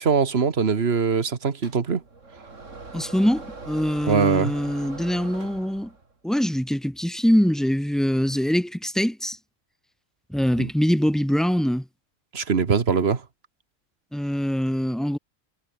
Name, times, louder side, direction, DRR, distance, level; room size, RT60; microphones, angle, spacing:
voice 1, 0.0-2.0 4.1-4.5 10.6-10.7 12.3-13.2, right 5 dB, 55° right, 1.7 m, -22 dB
sound 1, 1.6-6.1, right 3 dB, 70° right, 3.5 m, -41 dB
voice 2, 2.9-5.9 6.2-9.4 10.3-11.8 14.1-15.2, equal, ahead, 1.8 m, -23 dB
omnidirectional pair, 1.3 m